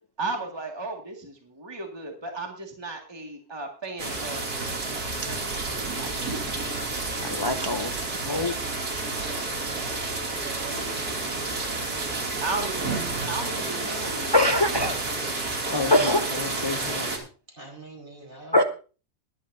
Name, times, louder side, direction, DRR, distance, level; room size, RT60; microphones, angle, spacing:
voice 1, 0.2-4.4 5.2-5.4 6.0-6.1 12.4-14.4, right 3 dB, 15° right, 2 dB, 2.1 m, -34 dB
sound 1, 4.0-17.2, right 3 dB, 90° right, 3.2 m, -30 dB
voice 2, 7.2-8.6 14.3-15.0 15.7-17.3 18.5-18.6, left 1 dB, 40° left, 7 dB, 0.3 m, -24 dB
voice 3, 9.7-11.0 15.6-15.9 17.5-18.7, right 2 dB, 35° right, 1 dB, 4.5 m, -42 dB
21.0 x 10.0 x 2.7 m, 0.36 s
omnidirectional pair, 1.6 m